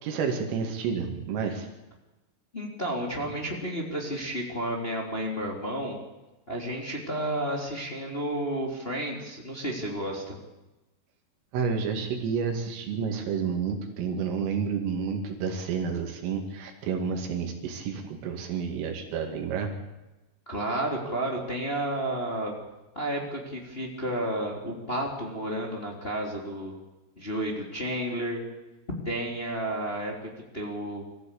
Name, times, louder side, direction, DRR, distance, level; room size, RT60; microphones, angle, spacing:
voice 1, 0.0-1.7 11.5-19.7, right 6 dB, 80° right, 3 dB, 4.9 m, -30 dB
voice 2, 2.5-6.0 6.5-10.4 20.5-22.5 22.9-26.8 27.2-28.4 29.0-31.0, right 1 dB, 15° left, 0 dB, 2.6 m, -31 dB
24.0 x 15.0 x 8.6 m, 1.0 s
omnidirectional pair, 5.8 m